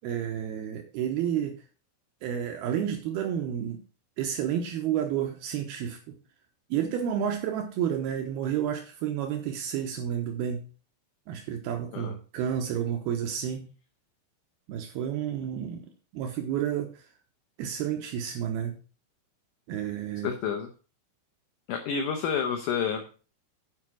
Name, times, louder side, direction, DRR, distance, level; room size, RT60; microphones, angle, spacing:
voice 1, 0.0-1.5 2.2-3.8 4.2-6.0 6.7-10.6 11.3-13.7 14.7-15.8 16.1-16.9 17.6-18.8 19.7-20.3, right 9 dB, 80° right, 4 dB, 2.8 m, -30 dB
voice 2, 20.2-20.7 21.7-23.0, left 7 dB, 70° left, 5 dB, 2.0 m, -29 dB
9.8 x 5.1 x 6.1 m, 0.37 s
omnidirectional pair, 4.6 m